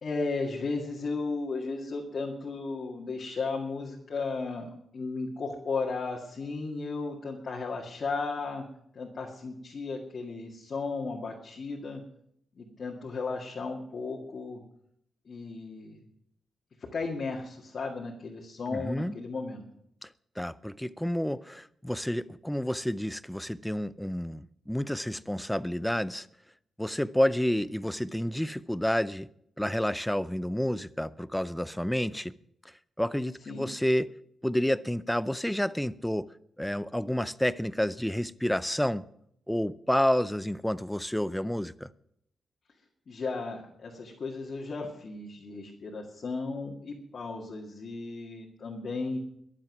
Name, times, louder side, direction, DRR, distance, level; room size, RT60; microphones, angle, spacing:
voice 1, 0.0-8.6 8.9-12.0 12.6-14.6 15.3-16.0 16.8-19.6 33.5-33.7 43.1-49.2, left 3 dB, 45° left, 2.0 m, -35 dB
voice 2, 18.7-19.1 20.0-20.1 20.4-26.3 26.8-29.3 29.6-32.3 33.0-34.1 34.4-36.3 36.6-39.0 39.5-41.9, equal, 5° left, 0.4 m, -29 dB
22.0 x 7.5 x 6.0 m
wide cardioid pair, 160°, 0 cm